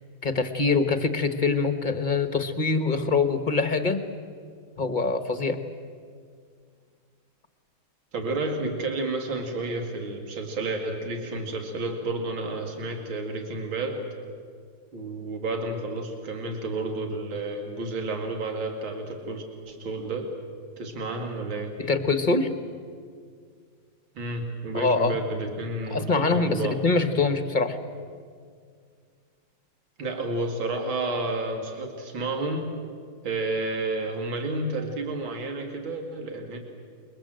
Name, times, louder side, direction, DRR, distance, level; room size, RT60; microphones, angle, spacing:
voice 1, 0.2-4.0 4.8-5.6 21.8-22.5 24.7-25.2 25.9-27.8, left 4 dB, 25° left, 9 dB, 1.2 m, -24 dB
voice 2, 8.1-14.1 14.9-20.3 20.8-21.8 24.1-26.8 30.0-32.7 33.2-36.6, right 2 dB, 70° right, 3 dB, 3.2 m, -31 dB
28.5 x 22.5 x 7.8 m, 2.1 s
omnidirectional pair, 2.2 m